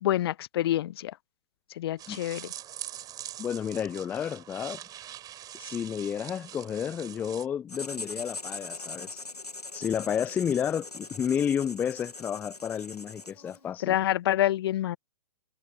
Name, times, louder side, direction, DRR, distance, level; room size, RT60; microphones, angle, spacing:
voice 1, 0.0-1.1 1.8-2.5 13.8-15.0, left 13 dB, 40° left, 0.7 m, -27 dB
sound 1, 2.0-7.5, right 12 dB, 20° right, 6.4 m, -43 dB
voice 2, 3.4-4.8 5.5-9.2 9.7-14.0, left 8 dB, 10° left, 0.4 m, -31 dB
Writing, 7.7-13.7, left 3 dB, 85° left, 1.6 m, -41 dB
figure-of-eight pair, 125°, 20 cm